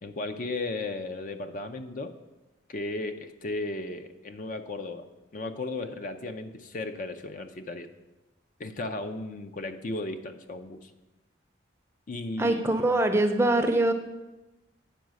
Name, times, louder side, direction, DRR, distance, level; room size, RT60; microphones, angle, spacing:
voice 1, 0.0-2.1 2.7-7.9 8.6-10.9 12.1-12.9, left 2 dB, 45° left, 7 dB, 0.5 m, -35 dB
voice 2, 12.4-13.9, right 2 dB, 15° right, 5 dB, 0.6 m, -23 dB
9.1 x 4.7 x 6.2 m, 1.1 s
head